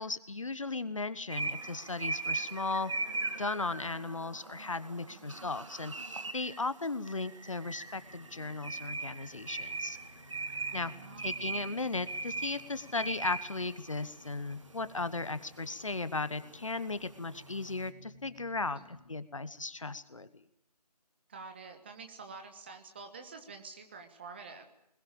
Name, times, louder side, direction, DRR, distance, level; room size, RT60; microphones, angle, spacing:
voice 1, 0.0-2.9 3.4-10.0 10.7-10.9 11.2-20.4, left 3 dB, 50° left, 14 dB, 1.2 m, -36 dB
sound 1, 1.3-17.9, right 3 dB, 50° right, 2.0 m, -40 dB
voice 2, 5.1-5.4 10.9-11.3 18.7-18.8 21.3-24.7, right 4 dB, 15° right, 5 dB, 1.4 m, -48 dB
sound 2, 6.9-19.2, left 2 dB, 75° left, 4.0 m, -57 dB
20.5 x 20.5 x 8.8 m, 0.76 s
figure-of-eight pair, 160°, 21 cm